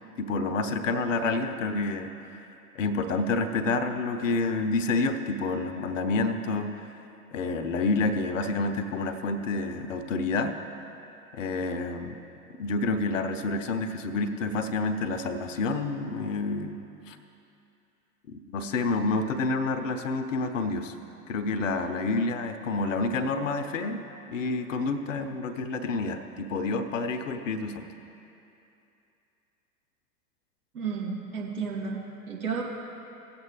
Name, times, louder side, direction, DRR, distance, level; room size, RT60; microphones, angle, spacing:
voice 1, 0.2-2.1 2.7-6.8 7.3-10.6 11.3-12.2 12.6-17.2 18.3-20.9 21.3-27.9, left 3 dB, 50° left, 8 dB, 0.8 m, -28 dB
voice 2, 30.7-32.6, right 5 dB, 60° right, -3 dB, 2.2 m, -32 dB
17.5 x 7.7 x 3.0 m, 2.8 s
figure-of-eight pair, 100°, 48 cm